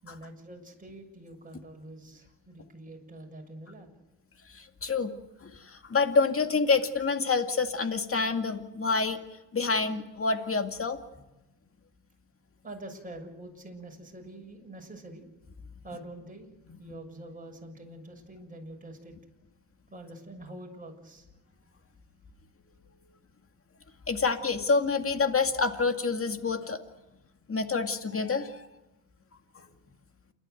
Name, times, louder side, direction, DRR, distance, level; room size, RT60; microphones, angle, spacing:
voice 1, 0.0-3.9 12.6-15.2 15.8-16.5 16.8-19.1 19.9-21.3 21.8-21.9, right 1 dB, 15° right, 1 dB, 6.6 m, -45 dB
voice 2, 4.5-5.1 5.4-9.2 9.5-11.0 24.1-26.8 27.5-28.7, left 4 dB, 30° left, 7 dB, 2.2 m, -27 dB
28.5 x 12.0 x 9.2 m, 1.1 s
supercardioid pair, 75°, 47 cm